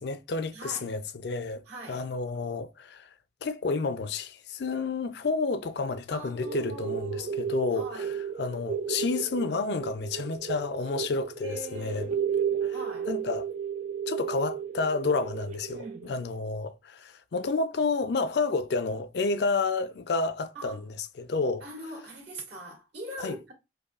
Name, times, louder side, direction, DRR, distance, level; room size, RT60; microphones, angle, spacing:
voice 1, 0.0-1.6 1.9-3.1 3.4-8.1 8.4-12.1 12.6-12.7 13.1-13.5 14.1-20.8 21.2-21.6 23.2-23.4, left 4 dB, 65° left, 0.4 m, -30 dB
voice 2, 0.5-0.9 1.7-2.1 6.1-7.3 7.7-8.1 11.4-13.1 15.7-16.1 20.5-20.8 21.6-23.5, right 1 dB, 70° right, 2.0 m, -42 dB
sound 1, 6.4-16.3, right 7 dB, 45° right, 0.3 m, -33 dB
5.2 x 2.3 x 2.4 m
head